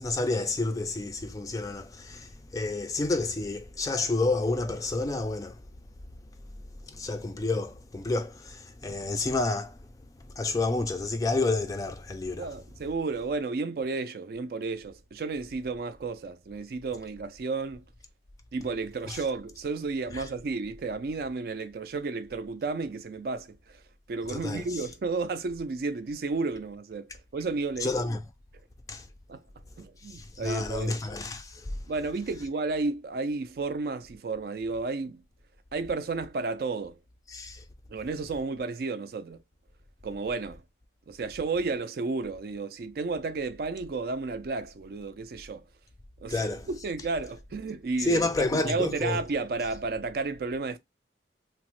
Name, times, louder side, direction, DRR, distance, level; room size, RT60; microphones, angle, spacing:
voice 1, 0.0-5.6 6.9-9.9 10.4-12.5 19.1-19.2 20.1-20.3 24.3-24.8 27.8-28.2 28.9-29.1 30.0-31.8 37.3-37.6 46.3-46.7 48.1-49.2, left 2 dB, 20° left, 0.3 m, -30 dB
voice 2, 12.4-17.9 18.5-23.8 24.1-28.0 29.3-29.4 29.8-31.0 31.9-35.2 35.7-37.0 37.9-39.4 40.0-40.6 41.1-45.6 46.2-50.8, right 3 dB, 55° right, 0.4 m, -32 dB
2.9 x 2.0 x 2.9 m
head